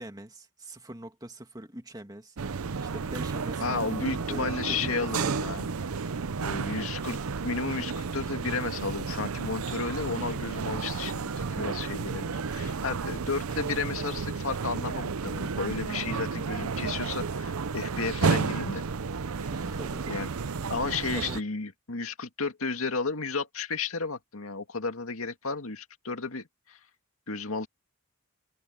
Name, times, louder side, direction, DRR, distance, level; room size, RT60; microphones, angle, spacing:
voice 1, 0.0-2.4 2.8-5.6 19.5-20.7 21.0-21.4, right 1 dB, 20° right, 2.3 m, -44 dB
sound 1, 2.4-21.4, right 5 dB, 90° right, 0.7 m, -32 dB
voice 2, 3.6-5.7 6.4-18.8 20.1-20.3 20.7-26.8 27.3-27.7, left 4 dB, 80° left, 2.1 m, -33 dB
head